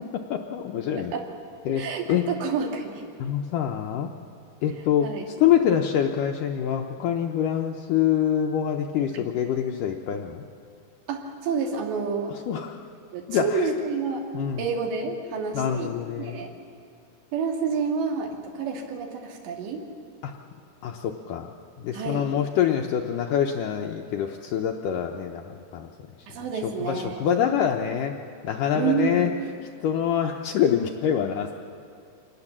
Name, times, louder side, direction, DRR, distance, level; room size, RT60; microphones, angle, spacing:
voice 1, 0.1-1.1 1.7-2.2 3.2-4.1 4.6-5.1 5.4-10.4 12.5-12.8 13.3-13.7 14.3-14.6 15.5-16.4 20.2-20.3 20.8-25.9 26.6-28.1 28.4-29.3 29.8-31.5, left 9 dB, 85° left, 2 dB, 1.8 m, -25 dB
voice 2, 1.8-3.0 5.0-5.3 9.1-9.2 11.1-12.4 13.1-14.3 14.6-16.5 17.3-19.9 21.9-22.3 26.3-27.3 28.7-29.4, right 5 dB, 85° right, 2 dB, 4.3 m, -29 dB
25.5 x 19.0 x 7.3 m, 2.3 s
omnidirectional pair, 4.9 m